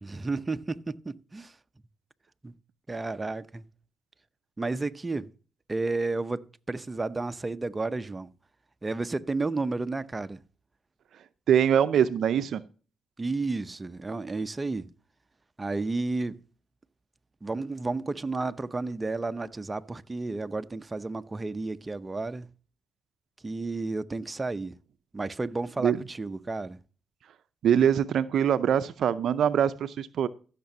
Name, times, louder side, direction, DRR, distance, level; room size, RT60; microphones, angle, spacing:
voice 1, 0.0-1.5 2.4-2.5 2.9-3.6 4.6-5.3 5.7-8.3 8.8-10.4 13.2-14.9 15.6-16.4 17.4-22.5 23.4-24.8 25.1-26.8, right 3 dB, 25° right, 0.7 m, -32 dB
voice 2, 11.5-12.6 25.8-26.0 27.6-30.3, right 9 dB, 70° right, 0.5 m, -23 dB
15.0 x 6.7 x 2.8 m
supercardioid pair, 55°, 0 cm